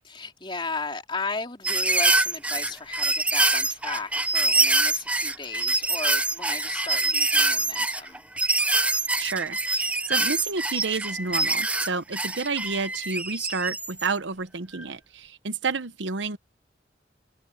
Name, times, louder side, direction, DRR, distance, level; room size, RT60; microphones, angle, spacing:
voice 1, 0.1-8.2, left 3 dB, 25° left, 3.5 m, -35 dB
sound 1, 1.6-14.1 14.7-14.8, right 2 dB, 5° right, 0.6 m, -25 dB
voice 2, 9.2-16.4, right 4 dB, 75° right, 0.9 m, -30 dB
head